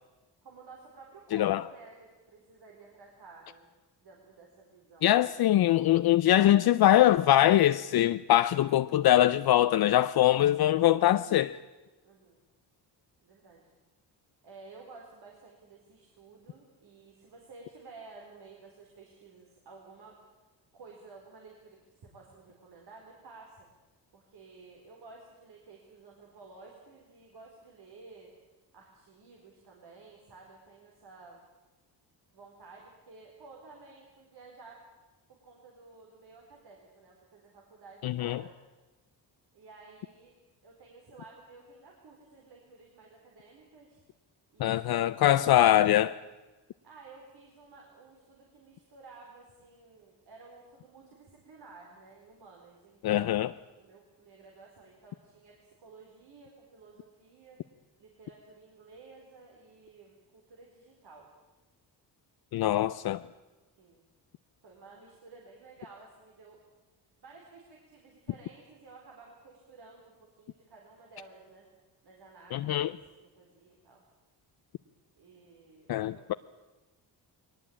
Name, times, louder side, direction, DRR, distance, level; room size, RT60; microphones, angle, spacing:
voice 1, 0.4-3.7 4.0-5.1 12.0-12.4 13.2-13.6 14.4-20.1 20.7-23.7 24.1-28.3 28.7-31.4 32.3-34.8 35.3-38.6 39.5-40.3 40.6-44.0 44.5-45.2 46.8-53.5 53.8-57.6 58.0-61.3 63.8-64.1 64.6-66.6 67.2-71.7 72.0-74.0 75.2-76.3, right 3 dB, 70° right, 4.2 m, -53 dB
voice 2, 1.3-1.6 5.0-11.6 38.0-38.4 44.6-46.2 53.0-53.5 62.5-63.2 72.5-72.9 75.9-76.3, left 13 dB, 60° left, 0.6 m, -23 dB
20.5 x 18.5 x 8.7 m
cardioid pair, 95°, 41 cm